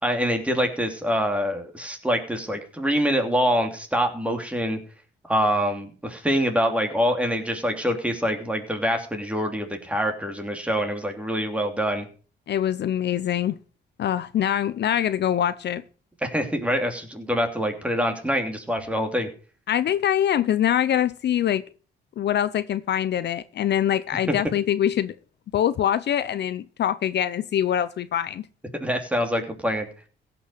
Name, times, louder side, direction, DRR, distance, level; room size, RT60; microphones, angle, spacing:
voice 1, 0.0-4.8 5.3-12.1 16.2-19.3 28.7-29.9, equal, 5° right, 3.0 m, -25 dB
voice 2, 12.5-13.6 14.0-15.8 19.7-21.6 22.2-25.1 25.5-28.4, left 10 dB, 60° left, 0.7 m, -24 dB
16.0 x 6.1 x 6.4 m
cardioid pair, 90°, 20 cm